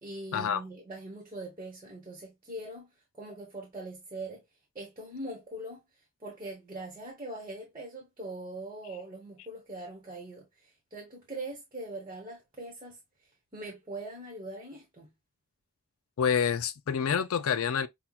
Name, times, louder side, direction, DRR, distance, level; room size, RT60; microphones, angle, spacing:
voice 1, 0.0-2.9 3.2-4.4 4.7-5.8 6.2-13.0 13.5-15.1, right 2 dB, 20° right, 1.2 m, -42 dB
voice 2, 16.2-17.9, left 7 dB, 75° left, 0.4 m, -27 dB
5.7 x 2.3 x 2.3 m
head